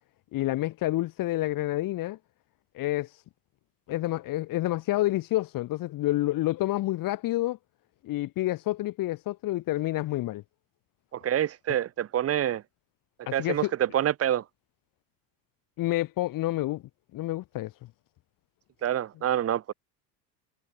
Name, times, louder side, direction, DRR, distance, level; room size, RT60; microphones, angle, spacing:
voice 1, 0.3-2.2 2.7-3.2 3.9-7.6 8.0-10.4 13.3-13.7 15.8-16.8 17.1-17.7, left 16 dB, 55° left, 4.0 m, -28 dB
voice 2, 11.1-12.6 13.3-14.4 18.8-19.7, right 11 dB, 35° right, 1.5 m, -27 dB
cardioid pair, 135°, 40 cm